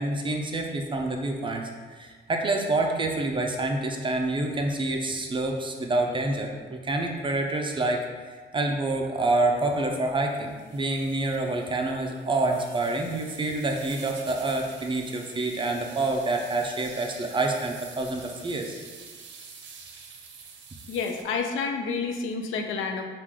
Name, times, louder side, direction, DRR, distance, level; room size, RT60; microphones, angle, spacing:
voice 1, 0.0-1.6 1.9-8.0 8.5-18.8, right 2 dB, 25° right, 2 dB, 0.5 m, -27 dB
sound 1, 9.6-21.2, right 5 dB, 65° right, 0.6 m, -47 dB
voice 2, 20.9-23.0, left 5 dB, 85° left, 4 dB, 0.5 m, -29 dB
4.5 x 2.4 x 3.6 m, 1.5 s
cardioid pair, 90°, 20 cm